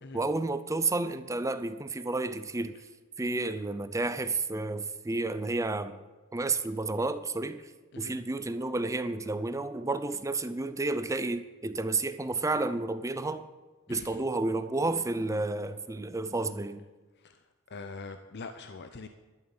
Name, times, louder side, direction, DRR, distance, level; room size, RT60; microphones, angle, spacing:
voice 1, 0.1-2.8 3.2-6.0 6.3-7.7 8.0-13.5 13.9-16.8, right 2 dB, 15° right, 12 dB, 0.5 m, -31 dB
voice 2, 13.9-14.2 17.1-19.1, left 4 dB, 50° left, 8 dB, 0.7 m, -44 dB
12.5 x 7.3 x 8.9 m, 1.3 s
head